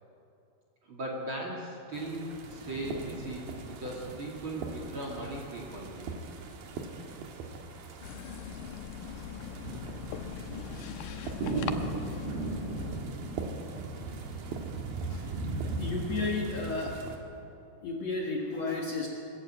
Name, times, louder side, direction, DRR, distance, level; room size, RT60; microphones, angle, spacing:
voice 1, 0.8-6.1 15.6-15.8 17.5-17.6, right 1 dB, 35° right, -3 dB, 2.7 m, -38 dB
sound 1, 1.9-17.2, right 3 dB, 65° right, 3.2 m, -38 dB
sound 2, 8.0-13.0, left 8 dB, 80° left, 1.9 m, -40 dB
voice 2, 15.1-15.4 15.8-17.0 17.8-19.1, left 3 dB, 55° left, -1 dB, 2.2 m, -33 dB
21.0 x 14.0 x 8.9 m, 2.6 s
omnidirectional pair, 4.7 m